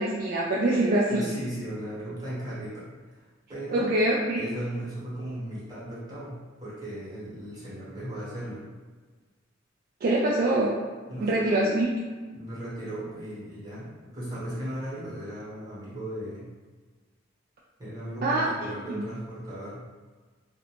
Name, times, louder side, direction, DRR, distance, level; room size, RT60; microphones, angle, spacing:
voice 1, 0.0-1.3 3.7-4.4 10.0-10.8 11.2-11.9 18.2-18.4 18.9-19.0, right 1 dB, 50° right, -5 dB, 0.3 m, -24 dB
voice 2, 1.1-3.9 4.4-8.7 11.1-11.9 12.3-16.5 17.8-19.9, right 1 dB, 20° right, -9 dB, 1.0 m, -36 dB
2.5 x 2.1 x 2.9 m, 1.4 s
head